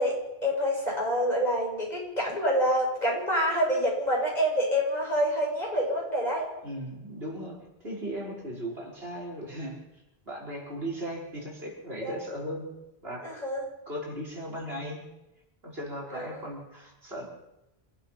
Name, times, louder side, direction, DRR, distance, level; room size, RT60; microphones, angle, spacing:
voice 1, 0.0-6.5 12.0-12.1 13.2-13.6 16.1-16.4, equal, 40° left, -2 dB, 7.8 m, -27 dB
voice 2, 6.6-9.8 10.3-12.7 13.0-13.3 13.9-15.0 15.6-17.3, equal, 70° right, -2 dB, 5.8 m, -37 dB
27.5 x 15.5 x 6.1 m, 0.94 s
omnidirectional pair, 1.1 m